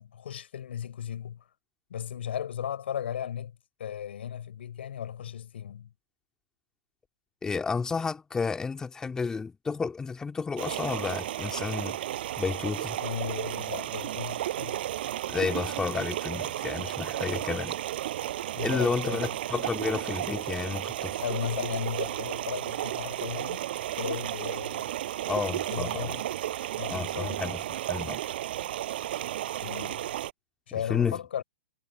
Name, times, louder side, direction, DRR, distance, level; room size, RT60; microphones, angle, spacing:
voice 1, 0.0-1.4 1.9-5.9 13.0-14.8 18.5-19.2 21.2-23.7 24.0-24.9 25.7-26.3 26.8-27.5 29.6-30.1 30.7-31.4, left 9 dB, 70° left, 5.0 m, -36 dB
voice 2, 7.4-12.0 12.4-13.0 15.3-17.8 18.6-21.2 25.3-26.1 26.9-28.2 30.9-31.2, left 4 dB, 10° left, 3.3 m, -31 dB
sound 1, 10.6-30.3, right 13 dB, 55° right, 5.9 m, -33 dB
hypercardioid pair, 130°, 6 cm